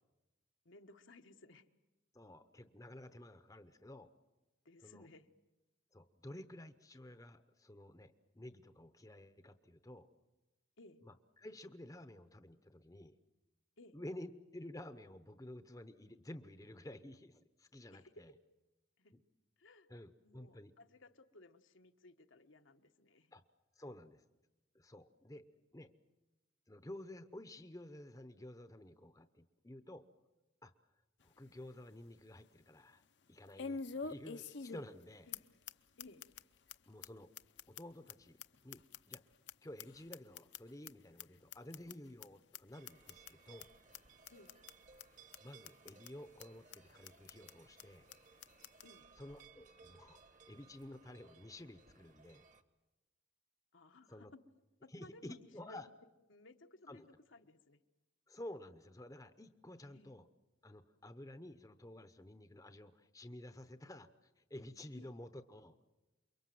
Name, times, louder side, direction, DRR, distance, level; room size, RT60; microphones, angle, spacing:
voice 1, 0.6-1.6 4.6-5.3 10.8-11.0 13.8-14.0 17.9-18.1 19.0-19.1 19.6-19.9 20.2-23.3 35.3-35.4 36.0-36.3 44.3-44.6 48.8-49.1 53.7-54.3 54.8-55.8 56.3-57.8 59.9-60.2 64.9-65.1, left 2 dB, 80° left, 5 dB, 1.3 m, -60 dB
voice 2, 2.1-4.1 4.8-5.1 5.9-10.1 11.0-13.2 13.9-18.3 19.1-19.2 19.9-20.7 23.3-23.4 23.8-24.2 24.7-25.4 25.7-25.9 26.7-30.0 30.6-30.7 31.2-33.0 33.3-35.3 36.9-37.3 37.7-38.8 39.1-39.2 39.6-43.7 45.4-48.1 49.2-50.2 50.5-52.4 54.1-54.3 54.9-55.9 56.9-57.1 58.3-60.3 60.6-65.8, left 1 dB, 15° left, 10 dB, 0.8 m, -52 dB
sound 1, 31.2-31.3 31.8-31.9 33.6-35.0 35.3-35.4 35.7-35.8 36.0-36.4 36.7-36.8 37.0-37.1 37.4-39.5 39.8-40.9 41.2-41.3 41.5-41.9 42.2-42.3 42.5-42.6 42.9-43.3 43.6-43.7 43.9-44.0 44.3-44.7 45.0-45.1 45.3-45.4 45.6-46.1 46.4-46.5 46.7-46.8 47.0-47.5 47.8-47.9 48.1-48.2 48.4-48.9, left 5 dB, 60° left, 0.8 m, -45 dB
sound 2, 42.7-52.6, right 5 dB, 40° right, 1.3 m, -63 dB
28.5 x 23.0 x 7.8 m, 1.1 s
head